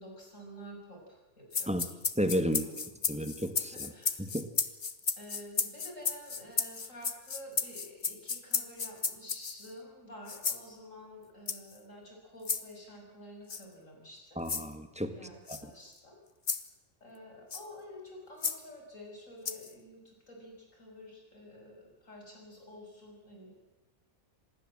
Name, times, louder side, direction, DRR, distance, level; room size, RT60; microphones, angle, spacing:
voice 1, 0.0-2.0 2.6-2.8 3.1-3.2 3.6-4.2 5.2-14.4 15.1-16.2 17.0-23.5, equal, 65° left, 1 dB, 7.1 m, -50 dB
sound 1, 1.5-9.7 10.3-10.6 11.5-11.8 12.5-12.6 13.5-13.6 14.5-14.7 15.5-15.6 16.5-16.7 17.5-17.7 18.4-18.6 19.5-19.7, left 5 dB, 35° left, 1.2 m, -33 dB
voice 2, 2.2-2.7 3.1-3.9 4.3-4.5 14.4-15.1, equal, 5° right, 8 dB, 1.8 m, -31 dB
25.5 x 20.0 x 7.7 m, 1.0 s
omnidirectional pair, 1.5 m